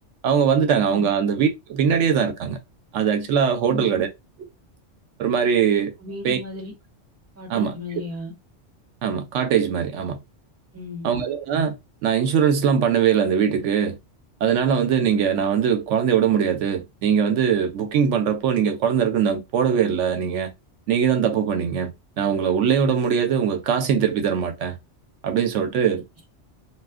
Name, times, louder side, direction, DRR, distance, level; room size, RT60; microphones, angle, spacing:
voice 1, 0.2-2.6 2.9-4.1 4.4-4.5 5.2-5.9 6.2-6.4 7.5-7.7 9.0-10.2 11.0-11.8 12.0-14.0 14.4-20.5 20.9-21.9 22.2-24.7 25.2-26.0, right 7 dB, 80° right, 0.9 m, -21 dB
voice 2, 6.0-6.7 7.4-8.3 10.7-11.1, left 3 dB, 15° right, 1.1 m, -35 dB
2.4 x 2.3 x 3.5 m
omnidirectional pair, 1.2 m